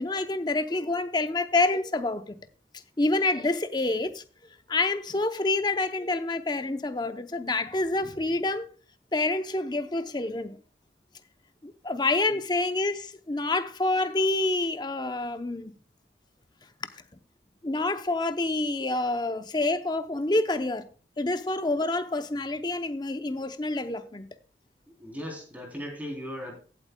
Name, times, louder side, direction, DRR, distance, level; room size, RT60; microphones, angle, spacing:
voice 1, 0.0-2.4 3.0-4.2 4.7-8.7 9.1-10.6 11.6-15.7 17.6-20.9 21.2-24.3, left 2 dB, 25° left, 0.6 m, -27 dB
voice 2, 24.9-26.5, equal, 10° right, 3.3 m, -37 dB
16.5 x 8.2 x 2.2 m
head